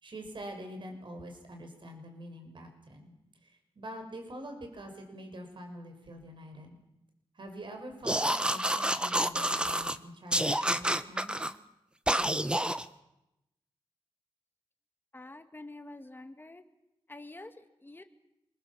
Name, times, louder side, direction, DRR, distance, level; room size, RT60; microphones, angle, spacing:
voice 1, 0.0-3.1 3.4-6.8 7.3-11.3, right 1 dB, 55° right, 4 dB, 6.1 m, -45 dB
sound 1, 8.0-10.0 10.3-11.5 12.1-12.8, right 1 dB, 10° right, 1.2 m, -28 dB
voice 2, 15.1-16.6 17.1-18.0, left 2 dB, 20° left, 7 dB, 2.0 m, -47 dB
27.0 x 21.5 x 7.4 m, 0.88 s
cardioid pair, 75°, 10 cm